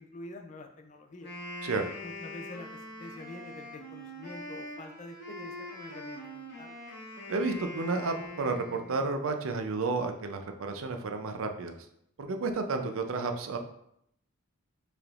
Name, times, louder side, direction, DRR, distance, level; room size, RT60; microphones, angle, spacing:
voice 1, 0.0-1.3 2.0-6.8, left 2 dB, 35° left, 5 dB, 0.4 m, -46 dB
Wind instrument woodwind instrument, 1.1-9.2, left 1 dB, 55° left, 1.2 m, -43 dB
voice 2, 7.3-11.8 12.2-13.6, right 3 dB, 75° right, 6 dB, 0.5 m, -31 dB
4.6 x 3.4 x 2.4 m, 0.74 s
head